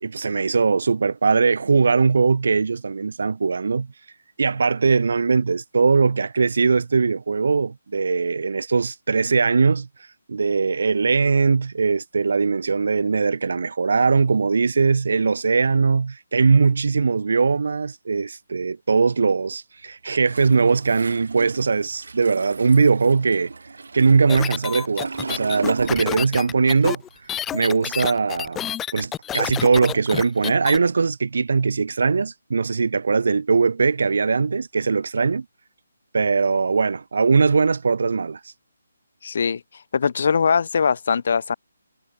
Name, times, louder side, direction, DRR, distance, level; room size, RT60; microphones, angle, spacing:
voice 1, 0.0-3.9 4.4-9.9 10.3-23.5 23.9-27.0 27.5-28.6 28.9-35.4 36.1-38.4, right 4 dB, 65° right, 2.4 m, -20 dB
Toilet flush, 20.2-26.6 26.9-28.5, right 4 dB, 80° right, 6.0 m, -36 dB
sound 1, 24.3-30.8, left 10 dB, 10° left, 0.8 m, -29 dB
voice 2, 39.2-39.6 39.9-41.5, left 6 dB, 50° left, 3.5 m, -21 dB
hypercardioid pair, 170°, 0 cm